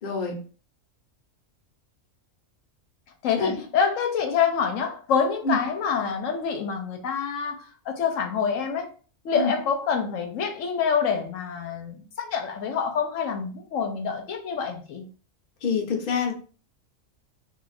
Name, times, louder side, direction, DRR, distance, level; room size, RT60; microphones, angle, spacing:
voice 1, 0.0-0.4 3.4-3.6 5.4-5.6 9.3-9.5 15.6-16.3, left 4 dB, 45° left, 2 dB, 0.8 m, -26 dB
voice 2, 3.2-8.9 9.2-15.1, left 6 dB, 80° left, 4 dB, 1.0 m, -26 dB
2.5 x 2.3 x 4.0 m, 0.39 s
omnidirectional pair, 1.3 m